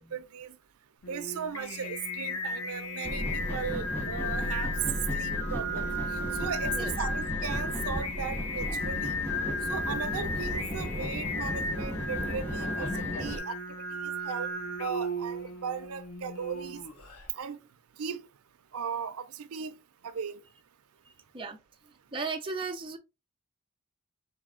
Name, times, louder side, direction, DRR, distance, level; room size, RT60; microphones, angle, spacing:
voice 1, 0.1-0.6 1.1-4.7 5.1-9.2 9.6-14.5 14.8-16.8 17.3-17.6 18.0-18.2 18.7-19.7 20.0-20.4, right 6 dB, 85° right, 0.5 m, -37 dB
Singing, 1.0-17.3, left 2 dB, 85° left, 0.8 m, -35 dB
sound 1, 3.0-13.4, equal, 10° left, 1.7 m, -35 dB
voice 2, 22.1-23.0, right 4 dB, 25° right, 0.6 m, -35 dB
4.0 x 3.4 x 3.7 m
head